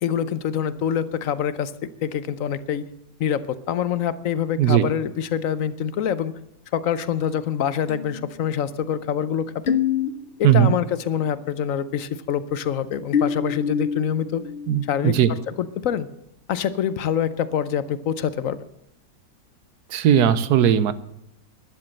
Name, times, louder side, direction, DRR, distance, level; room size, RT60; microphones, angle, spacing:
voice 1, 0.0-1.7 2.0-2.8 3.2-6.3 6.7-9.8 10.4-14.4 14.9-16.1 16.5-18.6, left 8 dB, 60° left, 15 dB, 0.9 m, -25 dB
voice 2, 4.6-4.9 10.4-10.7 14.7-15.3 19.9-20.9, right 10 dB, 70° right, 15 dB, 1.2 m, -18 dB
sound 1, 7.9-10.9 11.2-11.6 13.1-15.0, left 7 dB, 80° left, 0.5 m, -28 dB
12.0 x 11.0 x 7.7 m, 0.78 s
omnidirectional pair, 1.8 m